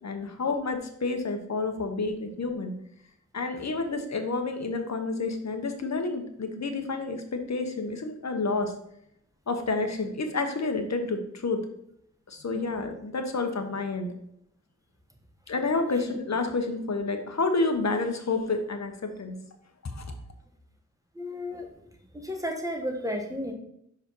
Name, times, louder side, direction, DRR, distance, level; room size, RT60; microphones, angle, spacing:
voice 1, 0.0-2.8 3.3-8.7 9.5-11.6 12.3-14.1 15.5-19.4 19.8-20.0, left 3 dB, 65° left, 6 dB, 1.1 m, -29 dB
voice 2, 21.1-21.7 22.1-23.5, equal, 10° right, 3 dB, 1.4 m, -32 dB
5.3 x 5.0 x 6.2 m, 0.74 s
wide cardioid pair, 90°, 30 cm